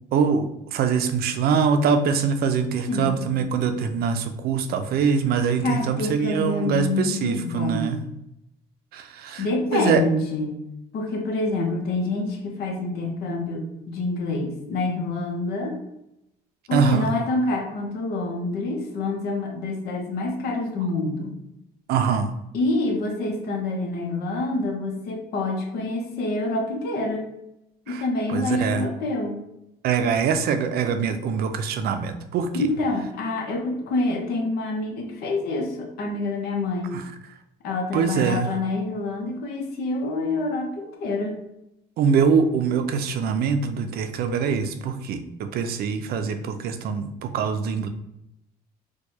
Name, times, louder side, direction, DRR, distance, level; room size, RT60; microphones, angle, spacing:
voice 1, 0.1-8.0 8.9-9.5 9.7-10.0 16.7-17.1 21.9-22.3 27.9-28.9 29.8-32.6 36.9-37.0 37.9-38.5 42.0-47.9, right 6 dB, 65° right, 8 dB, 0.5 m, -23 dB
voice 2, 2.9-3.2 5.6-8.0 9.4-10.6 10.9-15.8 16.7-21.3 22.5-27.3 27.9-29.4 32.5-36.9 37.6-41.4, left 2 dB, 70° left, 3 dB, 0.8 m, -27 dB
4.5 x 2.3 x 2.8 m, 0.85 s
cardioid pair, 110°, 17 cm